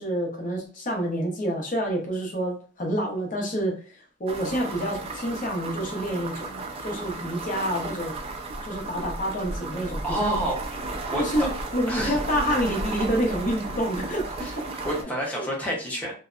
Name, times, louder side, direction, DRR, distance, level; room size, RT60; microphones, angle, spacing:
voice 1, 0.0-8.1 8.6-10.4 11.2-14.7 15.3-15.4, equal, 40° left, 0 dB, 0.8 m, -28 dB
sound 1, 4.3-15.0, right 2 dB, 30° right, 0.3 m, -34 dB
voice 2, 10.0-10.6 11.1-11.5 11.9-12.1 14.4-14.6 14.8-16.1, right 1 dB, 5° left, -3 dB, 0.7 m, -28 dB
2.7 x 2.1 x 2.4 m, 0.39 s
head